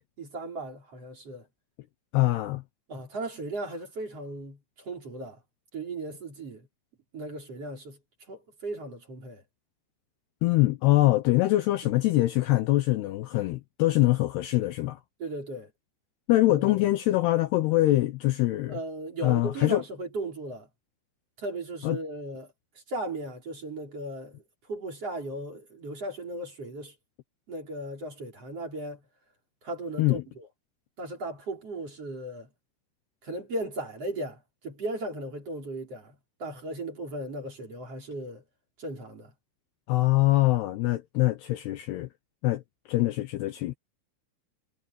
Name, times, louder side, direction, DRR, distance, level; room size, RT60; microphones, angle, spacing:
voice 1, 0.2-1.5 2.9-5.4 5.7-6.7 7.1-8.0 8.3-9.4 11.8-12.0 15.2-15.7 16.5-16.8 18.7-20.7 21.4-22.5 22.9-24.4 24.7-27.0 27.5-29.0 29.6-30.5 31.0-32.5 33.2-36.1 36.4-38.4 38.8-39.3, right 1 dB, 30° right, 5.4 m, -36 dB
voice 2, 2.1-2.6 10.4-15.0 16.3-18.8 19.2-19.8 21.8-22.0 30.0-30.2 39.9-42.1 42.4-42.6 42.9-43.7, left 17 dB, 75° left, 2.6 m, -24 dB
omnidirectional pair, 5.4 m